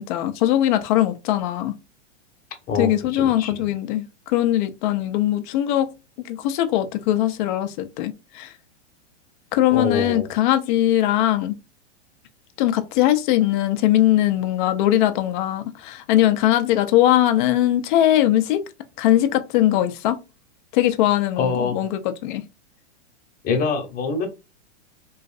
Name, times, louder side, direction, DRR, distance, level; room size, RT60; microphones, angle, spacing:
voice 1, 0.0-1.7 2.8-5.9 6.2-8.5 9.5-11.5 12.6-18.6 19.0-20.2 20.7-22.4, left 13 dB, 45° left, 0.5 m, -20 dB
voice 2, 2.7-3.6 9.7-10.3 21.4-21.8 23.4-24.3, left 4 dB, 25° left, 0.9 m, -24 dB
3.1 x 2.5 x 2.4 m
hypercardioid pair, 130°, 35 cm